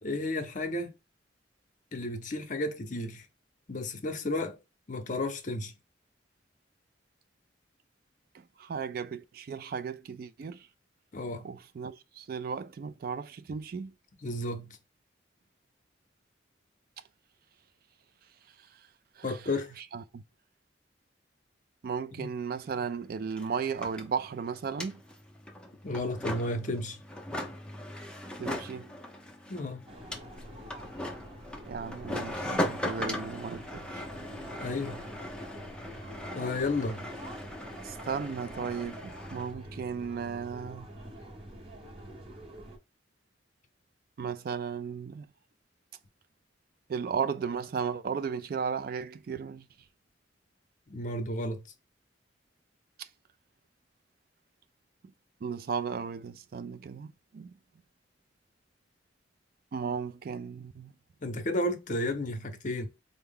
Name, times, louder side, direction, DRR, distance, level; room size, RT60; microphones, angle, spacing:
voice 1, 0.0-0.9 1.9-3.3 3.7-4.6 4.9-5.7 11.1-11.5 14.2-14.8 19.2-19.7 22.2-22.3 25.8-27.0 29.5-29.8 33.1-33.2 34.6-35.1 36.3-37.0 50.9-51.6 61.2-62.9, left 2 dB, 45° left, 0.7 m, -32 dB
voice 2, 8.3-10.7 11.4-13.9 19.2-19.3 19.8-20.2 21.8-25.0 28.4-28.9 31.7-34.0 37.8-40.9 44.2-45.3 46.9-49.6 53.0-53.1 55.4-57.5 59.7-60.9, right 6 dB, 50° right, 0.3 m, -35 dB
sound 1, 22.6-22.7 22.9-39.5, left 1 dB, 5° left, 0.5 m, -39 dB
sound 2, 29.9-42.8, right 1 dB, 30° right, 0.9 m, -46 dB
4.4 x 2.0 x 3.5 m
head